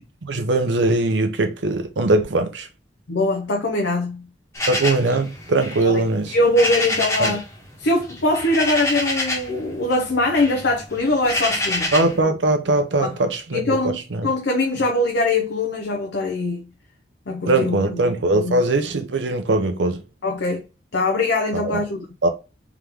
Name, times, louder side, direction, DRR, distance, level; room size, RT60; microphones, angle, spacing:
voice 1, 0.2-2.7 4.7-6.4 7.2-7.4 11.9-14.3 17.4-20.0 21.5-21.8 22.2-22.3, right 2 dB, 85° right, 0.7 m, -21 dB
voice 2, 3.1-4.3 5.9-6.0 6.3-7.4 7.8-11.9 13.0-13.1 13.5-14.0 14.2-16.7 17.3-18.0 18.3-18.6 20.2-20.7 20.9-22.1, left 2 dB, 80° left, 0.7 m, -22 dB
sound 1, 4.5-7.5 7.8-9.6 9.9-12.2, left 1 dB, 15° left, 1.2 m, -27 dB
3.6 x 3.1 x 3.4 m
head